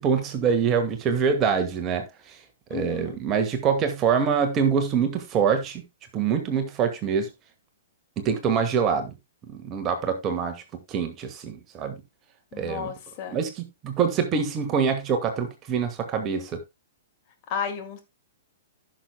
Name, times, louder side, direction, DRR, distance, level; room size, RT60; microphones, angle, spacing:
voice 1, 0.0-2.4 2.7-5.8 6.1-7.3 8.2-9.1 9.5-10.6 10.9-12.0 12.6-12.9 13.3-16.6, right 6 dB, 25° right, 1.5 m, -25 dB
voice 2, 2.7-3.2 12.5-13.4 17.5-18.0, left 7 dB, 35° left, 2.1 m, -33 dB
16.0 x 6.5 x 2.2 m
figure-of-eight pair, 110°, 0 cm